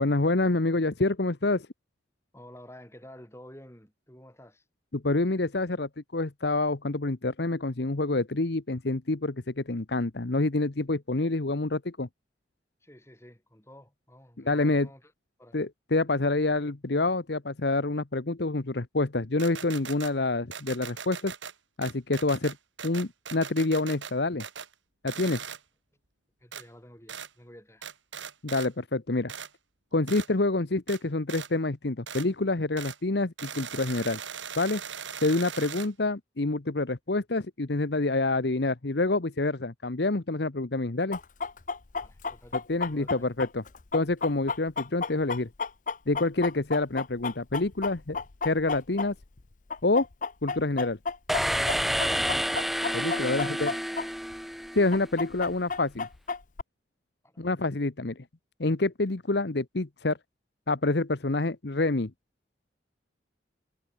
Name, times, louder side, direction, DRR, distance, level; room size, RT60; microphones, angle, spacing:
voice 1, 0.0-1.7 4.9-12.1 14.4-14.9 15.5-21.3 21.8-22.6 22.8-24.4 25.0-25.4 28.4-29.3 29.9-34.2 34.6-34.8 35.2-41.2 42.7-43.6 43.9-45.5 46.1-48.2 48.4-49.1 49.8-50.1 50.4-51.0 52.9-53.7 54.7-56.1 57.4-58.2 58.6-60.2 60.7-62.1, left 2 dB, 60° left, 1.0 m, -27 dB
voice 2, 2.3-4.6 12.8-15.1 15.4-15.6 26.4-27.9 42.0-43.3 52.0-52.5 53.2-53.8 57.2-57.4, equal, 15° left, 5.8 m, -50 dB
sound 1, 19.4-20.1 20.5-21.5 21.8-24.1 24.4-24.7 25.1-25.6 26.5-26.6 27.1-27.3 27.8-28.7 29.3-29.5 30.1-30.3 30.9-31.0 31.3-31.5 32.1-32.3 32.8-33.0 33.4-35.9, right 7 dB, 90° right, 3.9 m, -39 dB
Chicken rooster, 41.1-49.4 49.7-54.1 54.3-54.4 54.9-56.6, left 4 dB, 45° left, 0.7 m, -32 dB
sound 2, 51.3-55.1, equal, ahead, 1.2 m, -29 dB
head